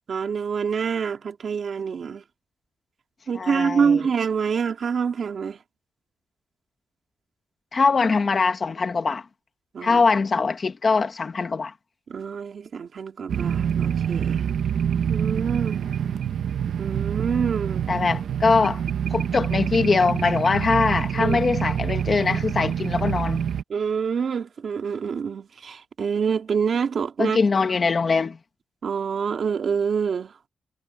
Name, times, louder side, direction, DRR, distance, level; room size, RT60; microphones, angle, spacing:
voice 1, 0.1-2.2 3.3-5.6 9.7-10.0 12.1-14.4 15.1-15.8 16.8-17.9 21.2-21.4 23.7-27.4 28.8-30.3, right 6 dB, 50° right, 2.4 m, -26 dB
voice 2, 3.3-4.0 7.7-9.2 9.8-11.7 17.9-18.8 19.1-23.4 27.2-28.4, left 4 dB, 35° left, 1.5 m, -22 dB
sound 1, 13.3-23.6, right 8 dB, 70° right, 1.3 m, -26 dB
wide cardioid pair, 165°, 0 cm